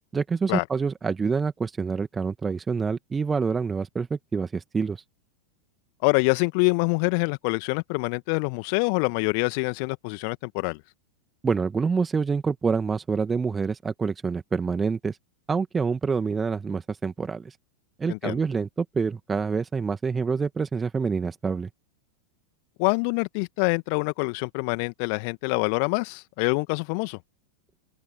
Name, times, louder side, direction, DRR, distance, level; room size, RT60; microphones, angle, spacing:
voice 1, 0.1-5.0 11.4-15.2 15.5-17.6 18.0-21.7, right 5 dB, 15° right, 1.8 m, -27 dB
voice 2, 6.0-10.8 18.1-18.4 22.8-27.2, left 38 dB, 45° left, 1.9 m, -25 dB
open air
figure-of-eight pair, 90°, 0 cm